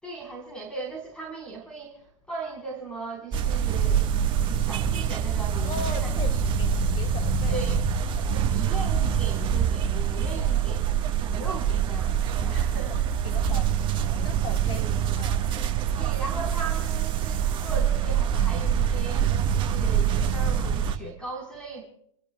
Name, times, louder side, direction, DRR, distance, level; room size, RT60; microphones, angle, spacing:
voice 1, 0.0-4.0 4.4-6.4 7.5-7.8 8.2-10.9 11.2-13.3 14.6-14.9 15.9-21.8, right 3 dB, 5° left, -1 dB, 4.8 m, -38 dB
sound 1, 3.3-21.0, right 8 dB, 30° right, 1.6 m, -25 dB
voice 2, 5.6-6.3 6.6-7.6 8.1-8.3 12.4-12.5 13.2-14.9 15.2-15.5, left 4 dB, 30° left, 5 dB, 2.0 m, -39 dB
28.5 x 15.0 x 2.4 m, 0.68 s
hypercardioid pair, 120°, 17 cm